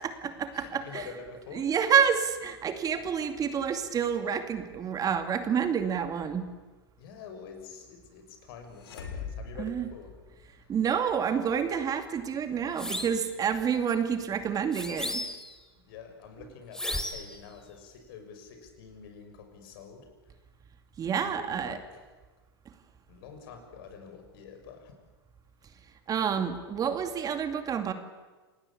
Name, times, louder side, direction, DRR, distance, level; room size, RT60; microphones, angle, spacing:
voice 1, 0.0-1.1 1.5-6.4 9.6-9.9 10.7-15.2 21.0-21.8 26.1-27.9, right 7 dB, 30° right, 8 dB, 2.5 m, -28 dB
voice 2, 0.5-1.7 7.0-10.2 10.5-10.7 15.7-20.1 21.0-21.9 23.1-24.9, left 6 dB, 65° left, 6 dB, 6.4 m, -47 dB
sound 1, 8.7-10.7, left 5 dB, 80° left, 5.1 m, -41 dB
sound 2, 12.8-13.2 14.7-15.5 16.7-17.4, left 1 dB, 5° left, 2.9 m, -34 dB
28.5 x 19.5 x 8.7 m, 1.2 s
hypercardioid pair, 105°, 13 cm